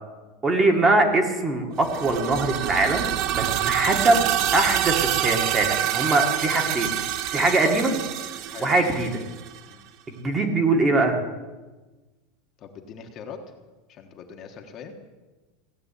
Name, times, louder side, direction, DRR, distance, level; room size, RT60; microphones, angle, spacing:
voice 1, 0.4-3.1 3.3-8.0 8.6-9.2 10.1-11.2, right 2 dB, 15° right, 4 dB, 1.7 m, -22 dB
sound 1, 1.8-9.6, right 12 dB, 40° right, 0.6 m, -26 dB
voice 2, 8.5-8.9 9.7-9.8 12.6-13.4 13.9-14.9, left 7 dB, 30° left, 3 dB, 1.3 m, -41 dB
16.5 x 8.8 x 8.5 m, 1.2 s
supercardioid pair, 165°, 0 cm